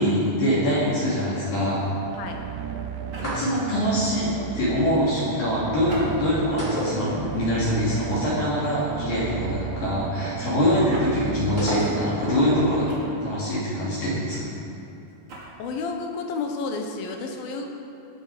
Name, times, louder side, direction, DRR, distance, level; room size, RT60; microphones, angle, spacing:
voice 1, 0.0-1.9 3.2-12.9 13.2-14.4, equal, 50° left, -9 dB, 4.3 m, -24 dB
sound 1, 1.6-13.5, right 8 dB, 90° right, 2.9 m, -35 dB
sound 2, 3.0-3.6 5.8-6.6 7.2-7.5 8.6-9.0 10.9-11.2 12.9-13.4 15.1-15.5, right 1 dB, 35° right, 2.8 m, -39 dB
sound 3, 3.1-3.9 6.6-7.6 7.9-8.0 11.6-12.4, right 1 dB, 15° left, 3.2 m, -30 dB
voice 2, 15.6-17.7, left 4 dB, 70° left, 3 dB, 2.4 m, -31 dB
19.5 x 10.0 x 5.0 m, 2.8 s
omnidirectional pair, 5.2 m